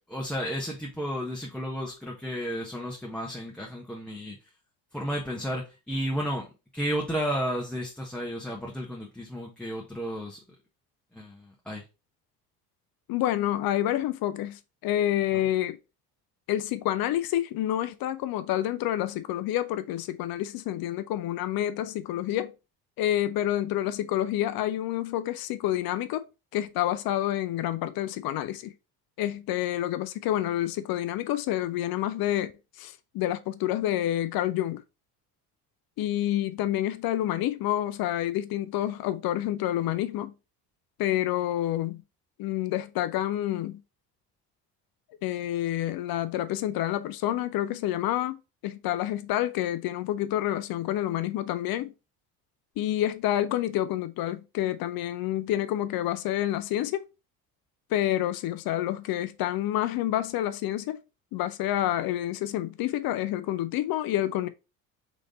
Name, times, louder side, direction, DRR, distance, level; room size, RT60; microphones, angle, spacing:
voice 1, 0.1-4.4 4.9-10.4 11.1-11.8, equal, ahead, 1.2 m, -33 dB
voice 2, 13.1-15.8 16.5-22.5 23.0-26.2 26.5-28.7 29.2-32.5 32.8-34.8 36.0-40.3 41.0-42.0 42.4-43.8 45.2-48.4 48.6-51.9 52.8-57.0 57.9-61.0 61.3-64.5, left 13 dB, 50° left, 0.6 m, -28 dB
4.1 x 3.3 x 3.8 m
hypercardioid pair, 65°, 46 cm